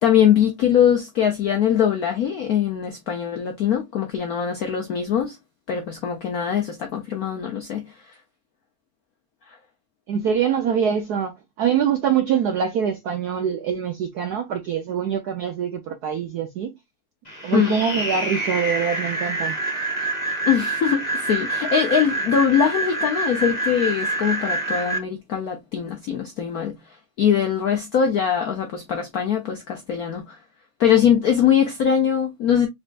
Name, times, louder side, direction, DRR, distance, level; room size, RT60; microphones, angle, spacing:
voice 1, 0.0-5.4 5.7-7.8 17.5-17.7 20.4-26.8 27.2-30.4 30.8-32.7, left 8 dB, 75° left, 0.8 m, -22 dB
voice 2, 10.1-16.7 17.4-19.6, right 8 dB, 80° right, 0.8 m, -24 dB
sound 1, 17.3-25.0, right 2 dB, 20° left, 1.4 m, -26 dB
4.2 x 3.5 x 2.4 m
omnidirectional pair, 2.4 m